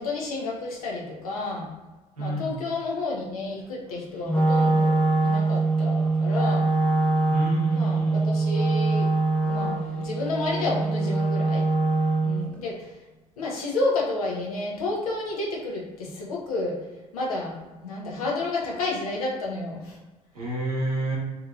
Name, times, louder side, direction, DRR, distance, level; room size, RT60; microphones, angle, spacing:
voice 1, 0.0-1.7 2.2-6.7 7.7-9.1 9.4-11.6 12.2-13.0 13.4-16.8 17.1-20.0, left 2 dB, 80° left, -2 dB, 0.7 m, -30 dB
voice 2, 2.2-2.6 7.3-8.3 20.3-21.2, right 2 dB, 85° right, -4 dB, 0.8 m, -30 dB
Wind instrument woodwind instrument, 4.2-12.5, right 3 dB, 10° left, 1.0 m, -23 dB
2.8 x 2.8 x 2.4 m, 1.2 s
figure-of-eight pair, 50°, 18 cm